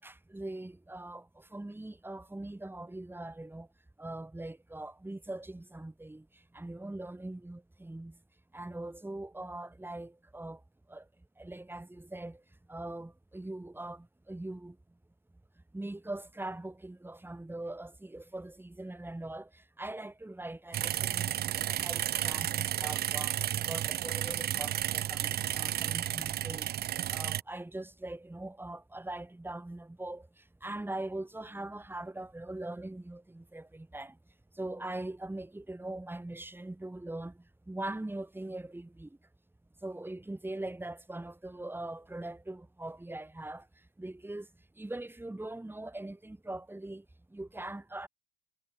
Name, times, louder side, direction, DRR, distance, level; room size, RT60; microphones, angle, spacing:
voice 1, 0.0-3.7 4.0-8.2 8.5-10.6 10.9-14.8 15.7-34.2 34.5-39.2 39.8-48.1, right 2 dB, 5° right, 5.9 m, -42 dB
sound 1, 20.7-27.4, right 12 dB, 35° right, 0.9 m, -32 dB
figure-of-eight pair, 65°, 29 cm